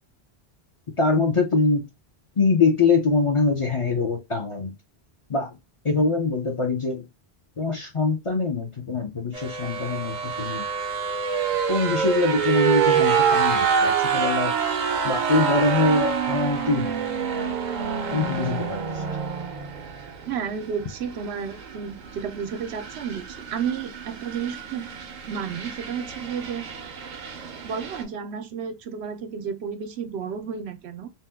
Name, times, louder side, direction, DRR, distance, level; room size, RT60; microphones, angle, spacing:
voice 1, 1.0-1.9 2.4-4.7 5.3-5.5 5.8-7.1 7.6-10.6 11.7-14.5 15.0-17.0 18.1-19.1, left 4 dB, 35° left, 0.6 m, -23 dB
sound 1, 9.3-28.0, right 6 dB, 50° right, 0.6 m, -27 dB
voice 2, 20.3-24.9 25.3-26.7 27.6-31.1, right 7 dB, 85° right, 0.9 m, -32 dB
2.8 x 2.2 x 3.4 m
omnidirectional pair, 1.1 m